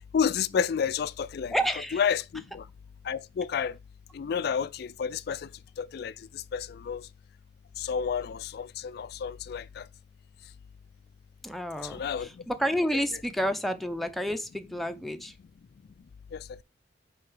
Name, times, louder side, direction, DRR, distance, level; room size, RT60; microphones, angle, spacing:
voice 1, 0.1-1.5 1.9-2.7 3.0-3.8 4.1-5.5 5.8-7.1 7.8-9.9 11.8-12.4 16.3-16.6, left 7 dB, 55° left, 0.3 m, -30 dB
voice 2, 1.5-2.0 11.4-15.3, equal, ahead, 0.5 m, -30 dB
7.7 x 4.4 x 4.9 m
head